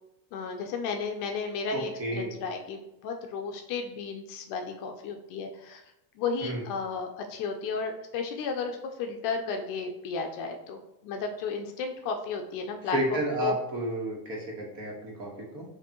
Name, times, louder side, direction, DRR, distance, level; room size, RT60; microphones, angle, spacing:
voice 1, 0.3-5.8 6.2-13.0 13.4-13.5, left 5 dB, 45° left, 4 dB, 0.5 m, -33 dB
voice 2, 1.7-2.4 6.4-6.6 12.9-15.6, right 1 dB, 45° right, -1 dB, 1.4 m, -31 dB
6.5 x 2.7 x 2.9 m, 0.90 s
cardioid pair, 160°, 47 cm